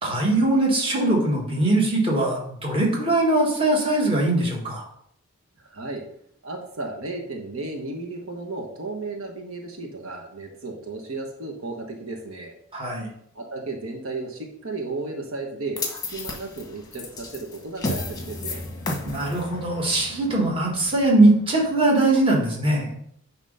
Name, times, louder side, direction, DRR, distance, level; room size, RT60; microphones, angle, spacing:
voice 1, 0.0-4.8 12.7-13.1 19.0-22.9, right 2 dB, 25° right, -2 dB, 1.5 m, -21 dB
voice 2, 5.6-6.0 6.4-12.5 13.3-15.8 16.1-18.6, right 3 dB, 70° right, 2 dB, 1.1 m, -34 dB
sound 1, 15.8-22.0, left 2 dB, 15° left, 1.0 m, -34 dB
9.0 x 3.0 x 5.4 m, 0.70 s
head